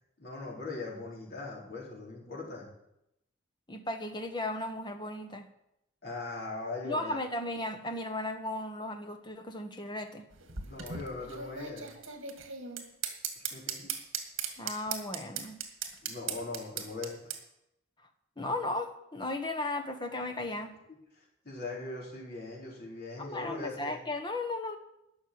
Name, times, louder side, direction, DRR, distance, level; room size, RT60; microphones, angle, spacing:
voice 1, 0.2-2.7 6.0-7.2 10.6-11.9 13.4-13.9 16.0-17.1 21.1-24.0, left 3 dB, 50° left, -4 dB, 4.5 m, -40 dB
voice 2, 3.7-5.5 6.8-10.3 14.6-15.6 18.4-20.7 23.2-24.8, left 2 dB, 20° left, 6 dB, 1.2 m, -35 dB
sound 1, 10.3-17.4, right 7 dB, 70° right, 1.9 m, -37 dB
12.5 x 6.6 x 9.5 m, 0.84 s
head